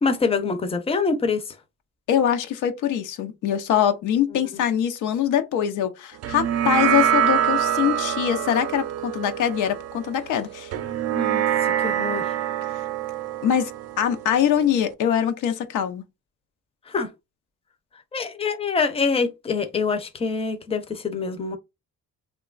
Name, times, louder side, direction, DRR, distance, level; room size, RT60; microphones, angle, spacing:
voice 1, 0.0-1.6 4.3-4.6 11.1-11.5 11.8-12.3 16.9-17.1 18.1-21.6, left 4 dB, 20° left, 0.5 m, -25 dB
voice 2, 2.1-10.7 13.4-13.7 14.0-16.0, left 9 dB, 85° left, 0.6 m, -23 dB
sound 1, 6.2-14.9, right 10 dB, 55° right, 0.4 m, -25 dB
2.9 x 2.3 x 2.3 m
cardioid pair, 90°, 30 cm